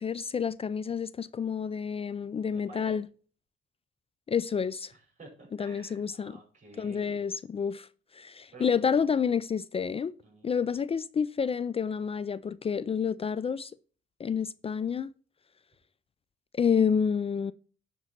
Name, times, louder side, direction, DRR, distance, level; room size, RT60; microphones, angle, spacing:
voice 1, 0.0-3.1 4.3-4.9 5.6-6.4 6.8-7.9 8.1-10.1 10.4-13.7 14.2-15.1 16.5-17.5, left 6 dB, 30° left, 0.4 m, -29 dB
voice 2, 2.2-3.0 4.9-7.3 8.5-8.9 10.2-10.7, right 2 dB, 40° right, 4.6 m, -51 dB
10.5 x 4.1 x 5.8 m
cardioid pair, 90°, 20 cm